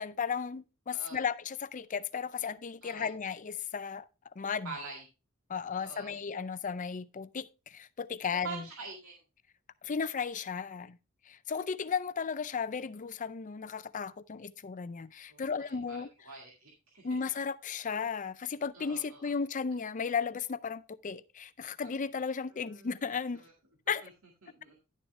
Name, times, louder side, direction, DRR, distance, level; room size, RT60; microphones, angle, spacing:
voice 1, 0.0-4.0 4.4-4.7 5.5-8.7 9.8-11.0 11.3-16.1 17.0-23.4 23.9-24.1, left 6 dB, 35° left, 0.5 m, -35 dB
voice 2, 0.9-1.2 2.8-3.1 4.6-5.0 5.8-6.1 8.4-9.2 15.3-15.4 15.7-16.0 16.3-17.0 18.7-19.4 22.8-22.9 23.4-23.5 24.4-24.7, right 3 dB, 65° right, 2.0 m, -45 dB
11.0 x 7.0 x 3.3 m
head